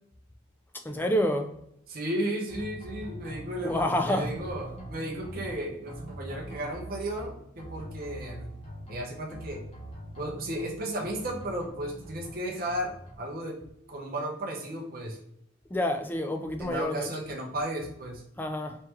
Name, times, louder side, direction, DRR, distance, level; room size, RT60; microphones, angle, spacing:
voice 1, 0.8-1.5 3.6-4.3 15.7-17.1 18.4-18.8, left 1 dB, 10° left, 0.3 m, -28 dB
voice 2, 1.9-8.5 8.9-9.7 10.1-13.6 13.9-15.2 16.6-18.2, right 1 dB, 45° right, 0.7 m, -34 dB
sound 1, 2.5-3.8 4.1-5.5 5.9-7.3 7.6-9.0 9.3-10.7 11.0-12.3 12.6-13.2, right 1 dB, 30° left, 1.0 m, -43 dB
3.7 x 3.1 x 2.9 m
head